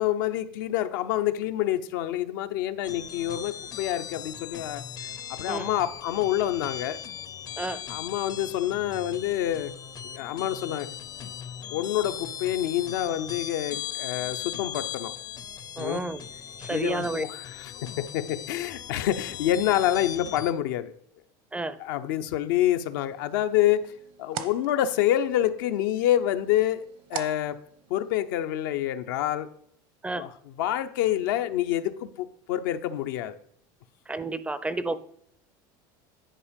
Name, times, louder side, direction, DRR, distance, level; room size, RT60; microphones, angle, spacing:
voice 1, 0.0-4.8 5.3-7.0 7.9-9.7 10.1-10.9 11.7-15.1 15.8-16.0 16.7-20.9 21.8-23.9 24.2-26.8 27.1-27.6 27.9-29.5 30.2-30.3 30.6-33.4, left 12 dB, 85° left, 9 dB, 0.6 m, -27 dB
sound 1, 2.8-20.5, left 9 dB, 40° left, 0.5 m, -39 dB
voice 2, 15.8-16.2 16.6-17.2 21.5-21.8 30.0-30.2 34.1-35.0, right 2 dB, 10° right, 15 dB, 0.4 m, -31 dB
sound 2, 22.9-28.3, right 9 dB, 55° right, 0.8 m, -43 dB
10.0 x 4.7 x 5.1 m, 0.66 s
supercardioid pair, 120°, 11 cm